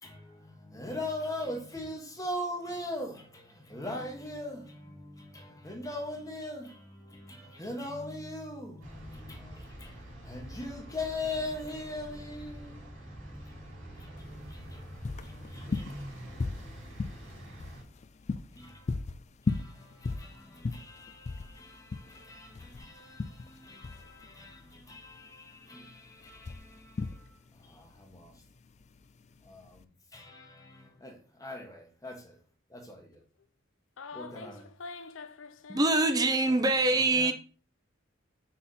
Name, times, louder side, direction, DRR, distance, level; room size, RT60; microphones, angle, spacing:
voice 1, 0.0-17.7 18.5-19.0 19.5-27.3 27.6-28.3 29.4-29.9 30.1-32.4 32.7-33.2 34.1-34.7 36.9-37.3, left 1 dB, 15° left, 1.3 m, -41 dB
sound 1, 8.8-17.8, equal, 85° right, 3.3 m, -46 dB
sound 2, 14.2-29.8, left 3 dB, 35° left, 0.3 m, -38 dB
voice 2, 34.0-36.0, left 4 dB, 70° left, 0.6 m, -45 dB
voice 3, 35.7-37.3, right 2 dB, 20° right, 0.6 m, -24 dB
5.7 x 4.2 x 4.2 m
head